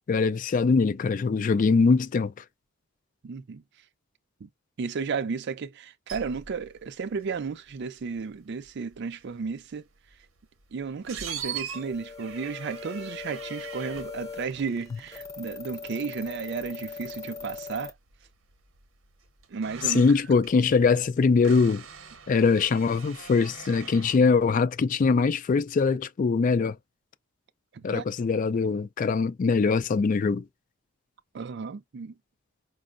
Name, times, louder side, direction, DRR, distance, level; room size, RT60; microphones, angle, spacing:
voice 1, 0.1-2.3 19.9-21.8 22.3-26.8 27.8-30.4, left 4 dB, 40° left, 0.3 m, -22 dB
voice 2, 3.2-3.6 4.4-4.5 4.8-9.8 10.7-17.9 19.5-20.0 27.7-28.0 31.3-32.1, right 5 dB, 55° right, 0.4 m, -33 dB
sound 1, 6.1-24.2, right 7 dB, 85° right, 0.9 m, -44 dB
sound 2, 11.7-17.9, left 5 dB, 15° left, 0.8 m, -41 dB
5.1 x 2.0 x 2.4 m
head